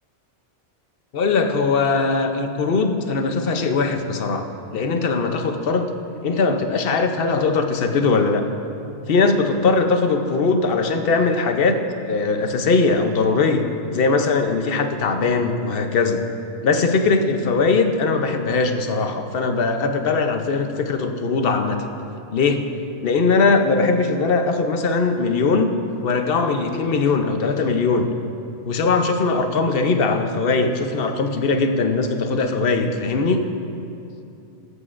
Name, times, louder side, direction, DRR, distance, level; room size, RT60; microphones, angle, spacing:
voice 1, 1.1-4.5 4.7-5.9 6.2-8.4 9.1-13.7 13.9-16.2 16.6-21.8 22.3-22.7 23.0-25.7 26.0-28.1 28.7-33.5, left 4 dB, 55° left, 6 dB, 0.9 m, -20 dB
19.0 x 8.2 x 2.5 m, 2.7 s
omnidirectional pair, 1.2 m